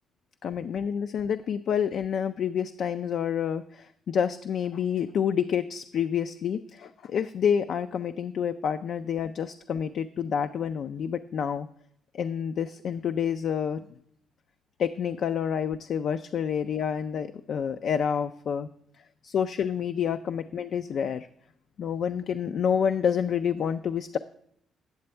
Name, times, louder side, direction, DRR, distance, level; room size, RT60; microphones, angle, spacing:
voice 1, 0.4-11.7 12.1-13.8 14.8-18.7 19.2-21.3 21.8-24.2, left 8 dB, 65° left, 10 dB, 0.3 m, -28 dB
9.5 x 6.8 x 4.3 m, 0.71 s
cardioid pair, 90°, 0 cm